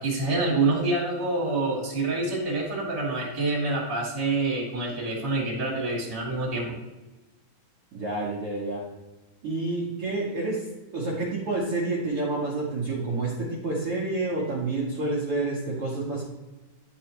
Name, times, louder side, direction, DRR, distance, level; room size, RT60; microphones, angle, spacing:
voice 1, 0.0-6.8, right 2 dB, 20° right, -3 dB, 1.7 m, -27 dB
voice 2, 7.9-8.9 9.4-16.2, right 2 dB, 60° right, -5 dB, 1.5 m, -29 dB
10.5 x 4.8 x 3.0 m, 1.1 s
omnidirectional pair, 4.2 m